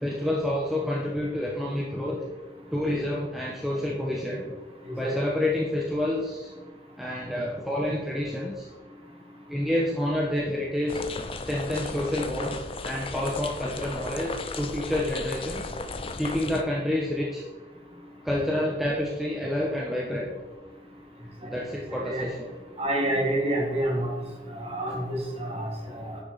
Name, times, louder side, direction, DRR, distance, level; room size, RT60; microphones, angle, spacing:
voice 1, 0.0-2.2 2.7-4.4 5.0-6.5 7.0-8.7 9.5-11.1 11.4-15.7 16.2-17.4 18.2-20.3 21.5-22.5, left 1 dB, ahead, -4 dB, 0.9 m, -28 dB
sound 1, 10.9-16.6, left 3 dB, 30° left, 0.5 m, -35 dB
voice 2, 22.8-24.1 24.6-26.2, right 1 dB, 30° right, -2 dB, 2.3 m, -28 dB
9.8 x 6.1 x 4.1 m, 1.3 s
head